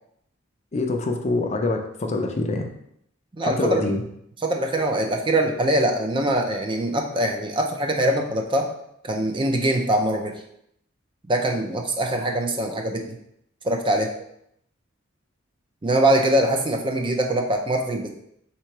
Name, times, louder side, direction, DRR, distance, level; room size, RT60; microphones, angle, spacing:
voice 1, 0.7-2.7 3.4-4.0, left 2 dB, 35° left, 4 dB, 0.5 m, -25 dB
voice 2, 3.3-3.9 4.4-8.7 9.0-10.4 11.3-13.2 13.6-14.1 15.8-18.1, right 1 dB, 25° right, 2 dB, 0.5 m, -23 dB
3.7 x 2.9 x 4.6 m, 0.73 s
head